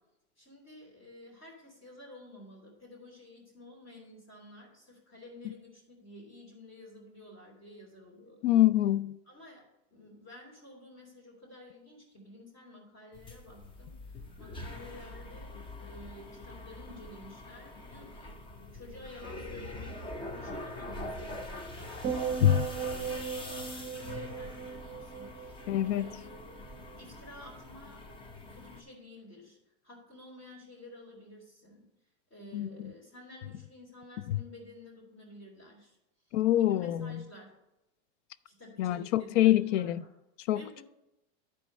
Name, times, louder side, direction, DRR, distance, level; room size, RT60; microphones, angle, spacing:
voice 1, 0.4-8.4 9.3-18.4 18.7-22.3 22.7-28.0 28.5-29.6 29.8-31.9 32.3-36.0 36.6-37.5 38.4-40.1 40.5-40.8, left 1 dB, 35° left, 3.0 m, -51 dB
voice 2, 8.4-9.2 22.4-22.7 25.7-26.1 32.5-32.7 34.3-34.4 36.3-37.2 38.8-40.0 40.5-40.8, left 13 dB, 85° left, 0.5 m, -25 dB
sound 1, 13.1-28.8, left 2 dB, 15° left, 0.4 m, -44 dB
sound 2, 22.0-26.4 26.7-27.1, right 7 dB, 25° right, 0.7 m, -37 dB
10.5 x 4.5 x 5.3 m
supercardioid pair, 150°, 36 cm